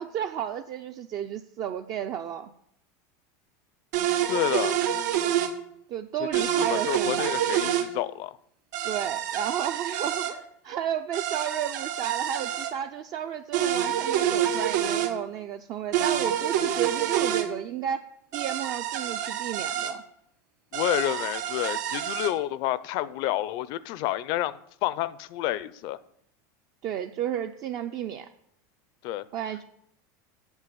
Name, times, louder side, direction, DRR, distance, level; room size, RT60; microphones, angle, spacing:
voice 1, 0.0-2.5 5.9-7.3 8.8-18.0 18.3-20.0 26.8-28.3 29.3-29.6, right 9 dB, 40° right, 0.6 m, -32 dB
sound 1, 3.9-5.5 6.3-7.9 8.7-10.3 11.1-12.7 13.5-15.1 15.9-17.5 18.3-19.9 20.7-22.3, right 10 dB, 80° right, 1.5 m, -27 dB
voice 2, 4.3-4.8 6.2-8.4 20.7-26.0 29.0-29.2, left 14 dB, 50° left, 0.6 m, -29 dB
8.0 x 8.0 x 8.5 m
supercardioid pair, 145°, 10 cm